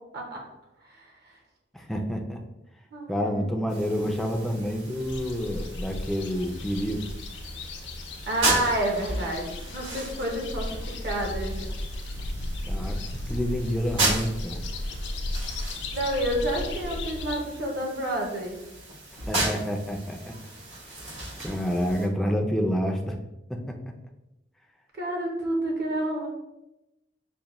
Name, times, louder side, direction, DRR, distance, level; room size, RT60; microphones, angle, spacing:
voice 1, 0.8-1.3 2.9-3.5 8.3-9.5 9.7-11.7 15.9-18.6 25.0-26.3, right 1 dB, 55° right, 0 dB, 0.7 m, -29 dB
voice 2, 1.7-2.4 3.1-7.1 12.7-14.6 19.3-20.4 21.4-23.2 23.5-23.9, equal, ahead, 2 dB, 0.3 m, -28 dB
sound 1, 3.7-22.1, right 2 dB, 80° right, 1.4 m, -35 dB
sound 2, 5.0-17.4, left 1 dB, 65° left, 0.5 m, -35 dB
5.2 x 2.1 x 2.9 m, 0.93 s
head